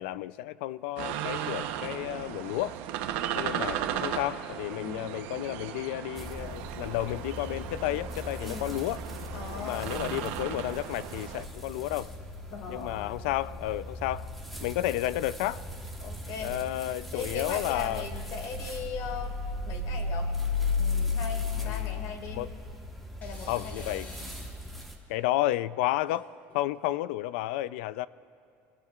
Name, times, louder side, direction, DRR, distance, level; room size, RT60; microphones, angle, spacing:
voice 1, 0.0-2.7 3.3-9.0 9.5-12.1 12.7-14.3 14.6-15.6 16.4-18.1 21.5-22.0 22.3-22.5 23.5-24.1 25.1-26.3 26.5-28.1, left 15 dB, 85° left, 17 dB, 0.4 m, -32 dB
sound 1, 1.0-11.5, right 10 dB, 75° right, 0.9 m, -36 dB
sound 2, 6.2-24.9, left 3 dB, ahead, 1.5 m, -36 dB
voice 2, 9.3-10.0 12.5-13.2 16.0-16.5 17.1-19.3 19.7-20.4 20.8-22.5 23.2-24.2, left 5 dB, 60° left, 4 dB, 2.1 m, -39 dB
sound 3, 18.1-18.6 19.0-19.4 20.3-20.4 20.7-20.8 22.1-22.7 23.2-24.5 24.8-24.9 26.0-26.9, left 2 dB, 25° left, 3.5 m, -53 dB
26.0 x 19.0 x 2.4 m, 2.4 s
cardioid pair, 140°, 6 cm